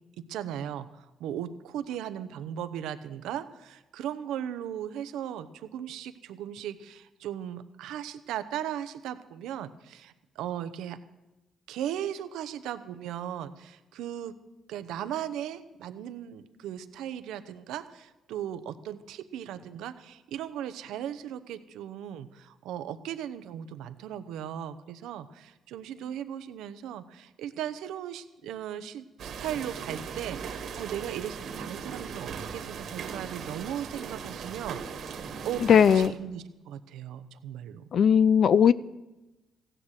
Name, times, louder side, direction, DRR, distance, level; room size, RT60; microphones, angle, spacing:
voice 1, 0.2-11.0 11.7-14.3 14.7-37.9 38.4-38.5, right 10 dB, 90° right, 11 dB, 0.8 m, -37 dB
sound 1, 29.2-36.1, right 6 dB, 65° right, 1.6 m, -38 dB
voice 2, 35.7-36.1 37.9-38.7, left 7 dB, 60° left, 17 dB, 0.4 m, -18 dB
15.5 x 9.9 x 6.5 m, 1.0 s
cardioid pair, 90°, 0 cm